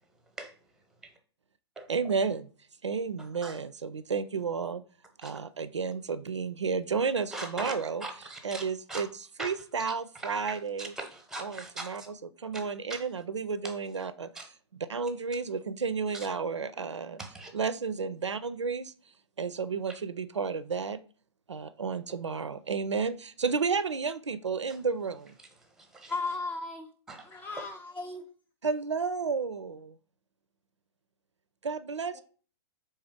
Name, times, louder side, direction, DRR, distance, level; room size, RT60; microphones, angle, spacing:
voice 1, 1.9-2.5 2.8-4.8 5.2-8.0 8.4-9.1 9.4-10.9 11.4-12.0 12.4-14.3 14.9-17.2 17.5-18.9 19.4-21.0 21.5-25.3 28.6-30.0 31.6-32.2, right 5 dB, 80° right, 0.4 m, -32 dB
voice 2, 7.3-7.7 8.0-9.0 9.4-9.5 9.8-12.1 12.5-12.6 12.9-13.0 13.6-13.7 14.3-14.5 16.1-16.3 17.2-17.5 25.6-26.1 27.1-27.6, right 2 dB, 5° right, 0.8 m, -41 dB
voice 3, 26.1-26.9 27.2-28.3 32.1-32.2, left 3 dB, 15° left, 0.4 m, -36 dB
4.2 x 3.2 x 3.5 m
figure-of-eight pair, 110°, 15 cm